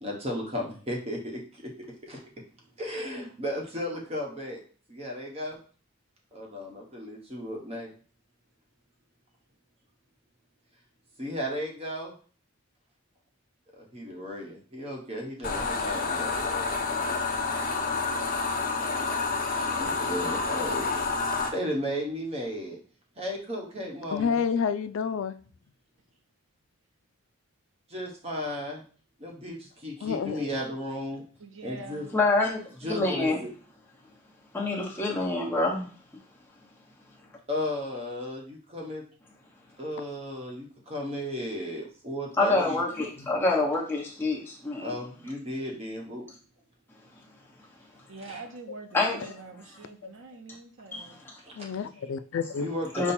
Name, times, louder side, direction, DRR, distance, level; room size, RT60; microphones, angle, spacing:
voice 1, 0.0-2.2 2.8-4.6 4.9-5.6 6.3-7.9 11.2-12.1 13.7-16.8 19.5-21.2 21.5-22.8 23.2-24.4 27.9-28.8 29.2-31.2 31.6-32.1 32.8-33.3 37.5-39.0 39.8-42.8 44.8-46.2 48.1-48.4 51.4-51.7 52.6-53.1, left 1 dB, 30° right, 1.0 m, -35 dB
sound 1, 15.4-21.5, left 4 dB, 40° left, 0.7 m, -29 dB
voice 2, 24.1-25.3 30.0-30.5 48.7-48.8 50.0-50.1 51.5-52.7, left 6 dB, 70° left, 0.3 m, -29 dB
voice 3, 31.4-32.1 48.1-51.2, right 3 dB, 65° right, 0.6 m, -44 dB
voice 4, 32.1-32.6 32.9-33.4 34.5-35.9 42.4-45.0 48.9-49.3 50.9-51.2 52.9-53.1, left 2 dB, 10° left, 1.0 m, -26 dB
5.4 x 2.2 x 4.3 m
head